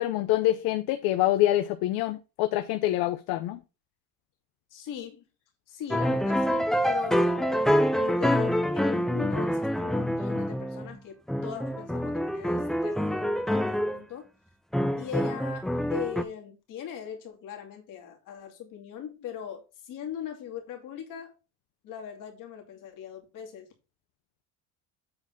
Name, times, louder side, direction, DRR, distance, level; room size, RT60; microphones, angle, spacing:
voice 1, 0.0-3.6, left 14 dB, 70° left, 0.7 m, -26 dB
voice 2, 4.7-5.2 5.7-14.3 15.0-21.3 21.8-23.7, left 9 dB, 55° left, 2.5 m, -40 dB
sound 1, 5.9-11.0 11.3-14.0 14.7-16.2, equal, ahead, 0.4 m, -26 dB
8.0 x 4.1 x 5.2 m
cardioid pair, 145°, 38 cm